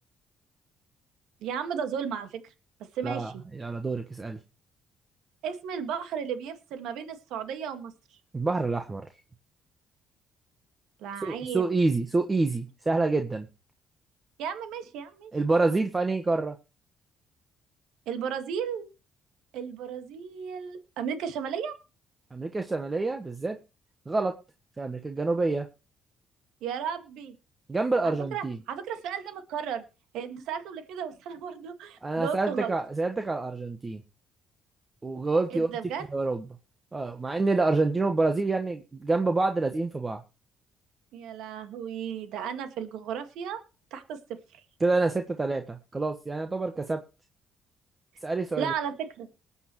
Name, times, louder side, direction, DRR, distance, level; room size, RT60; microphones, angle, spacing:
voice 1, 1.4-2.5 2.9-3.4 5.4-7.9 11.0-11.6 14.4-15.3 18.1-18.9 19.5-21.7 26.6-27.3 28.0-29.8 30.1-32.8 35.5-36.0 41.1-43.6 43.9-44.6 48.6-49.3, right 7 dB, 80° right, 8 dB, 1.9 m, -34 dB
voice 2, 3.0-4.4 8.3-9.0 11.2-13.5 15.3-16.5 22.3-23.6 24.1-24.3 24.8-25.7 27.7-28.6 32.0-34.0 35.0-35.7 36.1-36.4 36.9-40.2 44.8-47.0 48.2-48.7, right 3 dB, 25° right, 6 dB, 1.4 m, -27 dB
20.0 x 8.5 x 3.2 m, 0.31 s
supercardioid pair, 65°, 0 cm